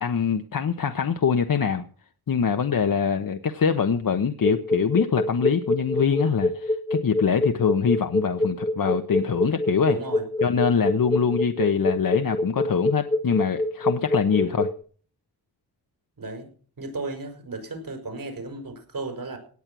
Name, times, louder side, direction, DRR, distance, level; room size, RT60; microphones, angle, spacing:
voice 1, 0.0-1.8 2.3-10.0 10.4-14.7, left 6 dB, 55° left, 7 dB, 1.1 m, -24 dB
sound 1, 4.4-14.8, left 1 dB, 10° left, 0.8 m, -25 dB
voice 2, 9.8-10.2 11.3-11.4 14.3-14.4 16.2-16.5 16.8-19.4, right 3 dB, 55° right, 5 dB, 5.7 m, -35 dB
18.0 x 8.7 x 6.2 m, 0.44 s
wide cardioid pair, 95°, 39 cm